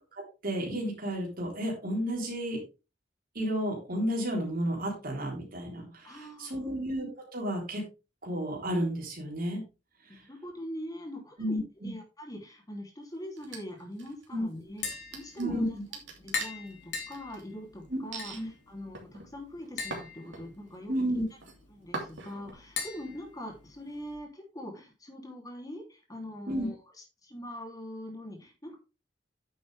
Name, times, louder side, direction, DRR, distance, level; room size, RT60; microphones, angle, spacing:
voice 1, 0.4-2.6 3.3-7.1 7.3-7.8 8.2-9.6 11.4-11.9 14.3-14.4 15.4-15.7 17.9-18.0 18.3-18.5 20.9-21.2 26.5-26.7, equal, 50° right, -1 dB, 3.8 m, -32 dB
voice 2, 6.0-6.7 10.1-15.8 16.2-20.9 21.7-26.8 27.2-28.8, left 1 dB, 20° left, 1 dB, 3.0 m, -43 dB
sound 1, 13.4-14.3 14.8-17.4 18.1-18.4 18.9-20.7 21.1-21.5 21.9-22.5, right 3 dB, 90° right, 2.9 m, -42 dB
Tap, 14.7-24.1, left 5 dB, 65° left, 3.2 m, -42 dB
9.8 x 7.1 x 3.4 m, 0.30 s
head